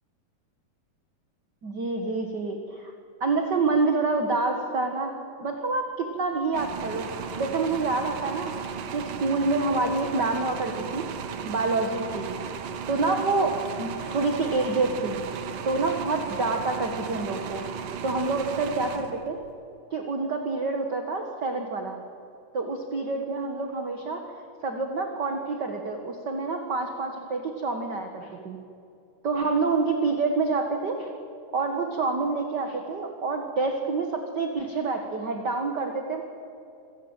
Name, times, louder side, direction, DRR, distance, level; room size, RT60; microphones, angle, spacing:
voice 1, 1.6-2.9 3.2-11.1 11.4-12.3 12.9-15.2 15.6-17.6 18.0-19.4 19.9-22.0 22.5-24.4 24.6-28.6 29.2-31.1 31.5-36.2, right 3 dB, 45° right, 4 dB, 1.3 m, -27 dB
sound 1, 6.5-19.5, right 6 dB, 65° right, 2.9 m, -35 dB
27.0 x 16.5 x 9.1 m, 2.5 s
omnidirectional pair, 4.4 m